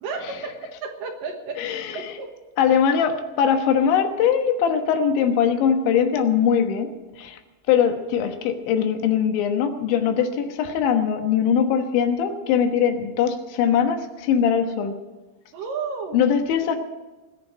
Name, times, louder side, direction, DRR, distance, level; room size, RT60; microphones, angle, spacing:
voice 1, 0.0-1.6 1.9-2.3 15.5-16.2, right 4 dB, 60° right, 3 dB, 2.5 m, -32 dB
voice 2, 1.6-2.2 2.6-6.9 7.2-7.4 7.7-15.0 16.1-16.8, left 7 dB, 80° left, 6 dB, 3.6 m, -21 dB
20.5 x 6.9 x 9.8 m, 1.2 s
omnidirectional pair, 5.3 m